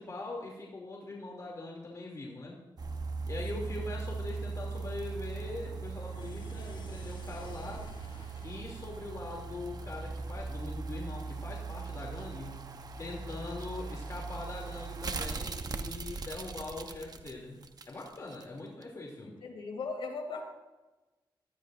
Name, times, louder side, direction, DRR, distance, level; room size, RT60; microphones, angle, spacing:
voice 1, 0.0-2.6 3.3-7.9 8.4-12.6 13.0-17.6 17.9-19.3, left 2 dB, 40° left, -2 dB, 2.8 m, -42 dB
sound 1, 2.8-18.4 18.8-18.9, right 4 dB, 50° right, 0.9 m, -39 dB
sound 2, 6.0-10.4, left 4 dB, 60° left, 1.3 m, -53 dB
voice 2, 19.4-20.4, left 4 dB, 85° left, 2 dB, 2.7 m, -38 dB
18.5 x 13.0 x 2.6 m, 1.1 s
wide cardioid pair, 95°, 9 cm